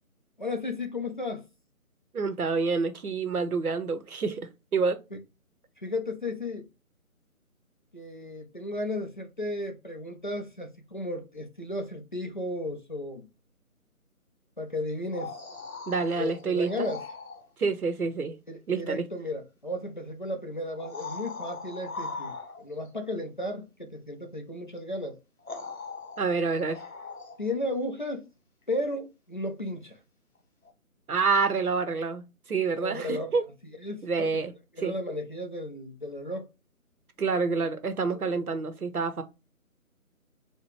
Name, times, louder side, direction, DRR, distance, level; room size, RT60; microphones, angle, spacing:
voice 1, 0.4-1.5 5.8-6.7 7.9-13.3 14.6-15.3 16.2-17.0 18.5-25.2 27.4-28.3 28.7-30.0 32.8-33.4 33.8-34.3 34.7-36.5 38.0-38.4, left 1 dB, 35° left, 0.5 m, -34 dB
voice 2, 2.1-5.0 15.9-16.9 17.6-18.4 18.7-19.1 26.2-26.8 31.1-32.2 32.5-33.4 34.0-34.5 34.8-34.9 37.2-39.2, right 4 dB, 80° right, 0.8 m, -27 dB
sound 1, 14.9-17.5 19.3-19.4 20.7-22.9 24.8-24.9 25.4-27.6 30.7-30.8, left 4 dB, 70° left, 1.3 m, -40 dB
4.2 x 2.2 x 3.1 m
figure-of-eight pair, 150°, 43 cm